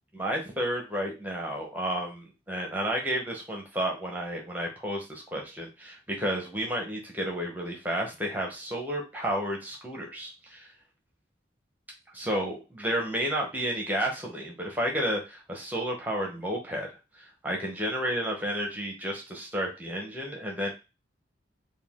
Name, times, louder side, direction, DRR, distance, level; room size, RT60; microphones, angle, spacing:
voice 1, 0.1-10.7 12.1-16.9 17.2-20.7, equal, 10° right, 0 dB, 0.8 m, -31 dB
4.1 x 2.3 x 3.5 m, 0.28 s
head